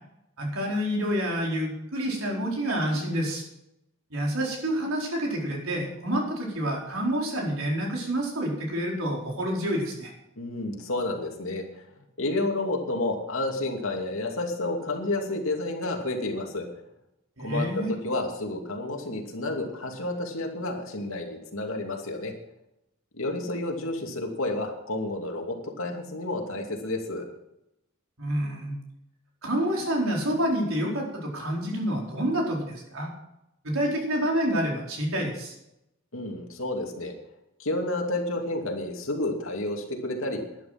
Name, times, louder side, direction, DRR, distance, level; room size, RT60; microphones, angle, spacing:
voice 1, 0.4-3.4 4.1-10.1 17.4-17.9 28.2-28.8 29.4-33.1 33.6-35.5, equal, 80° right, -1 dB, 4.6 m, -28 dB
voice 2, 10.4-11.8 12.2-16.7 17.4-22.3 23.1-27.3 36.1-37.1 37.6-40.4, left 2 dB, 75° left, 2 dB, 2.7 m, -30 dB
12.0 x 11.0 x 6.0 m, 0.84 s
head